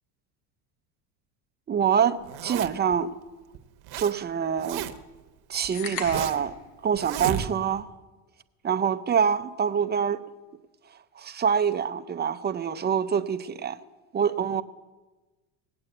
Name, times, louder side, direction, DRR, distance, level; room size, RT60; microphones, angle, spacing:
voice 1, 1.7-3.1 4.0-4.9 5.5-6.6 6.8-7.9 8.6-10.2 11.2-13.8 14.1-14.6, right 7 dB, 20° right, 0.6 m, -25 dB
Zipper (clothing), 2.2-2.9 3.5-4.1 4.4-5.2 5.6-6.5 7.0-7.8, right 11 dB, 55° right, 1.1 m, -33 dB
sound 1, 5.7-6.5, left 6 dB, 65° left, 2.7 m, -36 dB
19.0 x 8.8 x 7.9 m
supercardioid pair, 120°, 45 cm